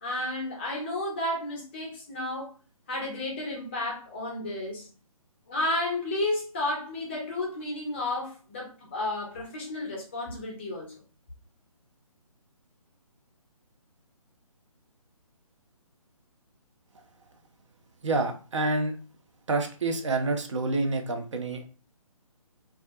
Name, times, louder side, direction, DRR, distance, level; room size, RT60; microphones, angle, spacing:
voice 1, 0.0-2.5 2.9-4.9 5.5-10.9, left 1 dB, 20° left, 0.5 m, -32 dB
voice 2, 18.0-19.0 19.5-21.6, right 2 dB, 55° right, 0.5 m, -28 dB
2.3 x 2.1 x 2.5 m
figure-of-eight pair, 145°, 19 cm